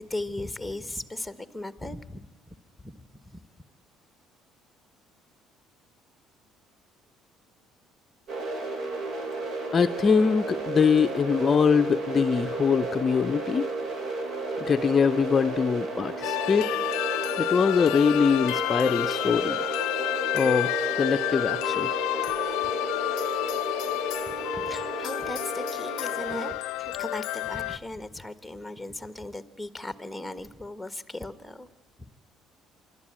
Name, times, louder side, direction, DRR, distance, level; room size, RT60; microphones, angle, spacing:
voice 1, 0.0-2.3 2.8-2.9 3.2-3.4 24.3-31.7, left 1 dB, 5° left, 13 dB, 1.4 m, -37 dB
sound 1, 8.3-26.5, right 3 dB, 55° right, 3.1 m, -33 dB
voice 2, 9.7-13.7 14.6-16.7 17.4-19.6 20.3-21.9, left 6 dB, 35° left, 10 dB, 0.6 m, -23 dB
sound 2, 16.2-27.8, left 18 dB, 85° left, 0.6 m, -30 dB
25.5 x 12.0 x 8.8 m, 1.1 s
cardioid pair, 95°, 0 cm